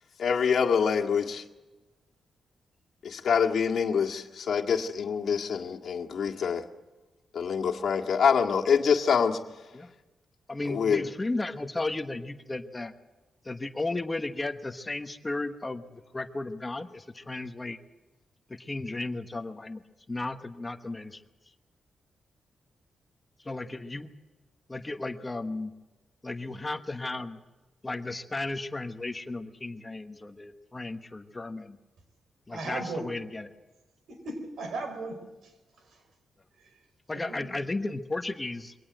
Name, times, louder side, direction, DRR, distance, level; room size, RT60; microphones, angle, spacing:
voice 1, 0.2-1.4 3.0-6.6 7.3-9.4 10.7-11.0, left 6 dB, 65° left, 1.8 m, -25 dB
voice 2, 10.5-12.9 13.4-17.8 18.5-19.8 20.1-21.2 23.5-24.1 24.7-25.7 26.2-27.4 27.8-31.8 32.5-33.5 37.1-38.7, left 2 dB, 20° left, 1.1 m, -34 dB
voice 3, 32.5-33.1 34.1-35.5 37.1-37.5, right 2 dB, 80° right, 5.1 m, -37 dB
23.0 x 18.0 x 7.9 m
wide cardioid pair, 140°, 0 cm